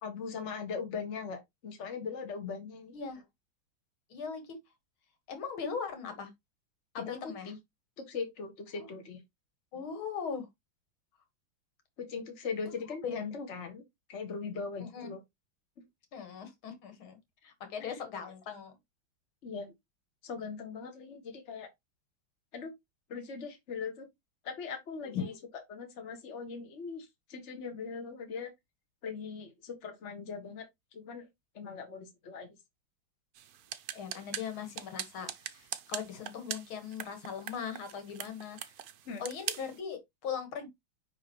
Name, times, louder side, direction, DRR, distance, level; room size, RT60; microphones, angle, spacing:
voice 1, 0.0-2.9 7.0-7.6 8.0-9.2 12.0-13.8 14.1-15.2 17.8-17.9 19.4-19.7 20.2-21.7 22.5-22.7 23.1-24.1 24.4-28.5 29.0-30.7 30.9-31.3 31.5-32.6 39.1-39.2, left 5 dB, 35° left, 1.6 m, -40 dB
voice 2, 2.9-3.2 4.1-4.6 5.3-6.3 6.9-7.5 9.7-10.5 13.0-13.3 14.8-15.1 16.1-18.8 25.0-25.4 33.9-38.7 39.2-40.7, left 6 dB, 80° left, 2.4 m, -39 dB
sound 1, 33.3-39.8, right 10 dB, 65° right, 1.0 m, -42 dB
9.8 x 3.7 x 3.0 m
omnidirectional pair, 2.2 m